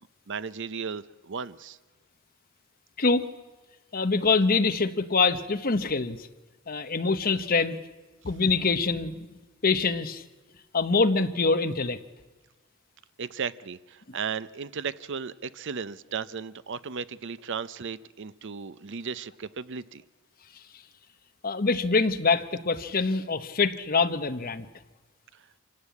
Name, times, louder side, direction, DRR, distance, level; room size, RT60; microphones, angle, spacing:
voice 1, 0.3-1.8 13.2-20.0, right 6 dB, 60° right, 16 dB, 0.6 m, -35 dB
voice 2, 3.9-6.2 6.7-7.8 8.2-9.3 9.6-10.2 10.7-12.0 21.4-24.7, left 4 dB, 45° left, 10 dB, 1.1 m, -24 dB
25.5 x 16.0 x 8.4 m, 1.2 s
head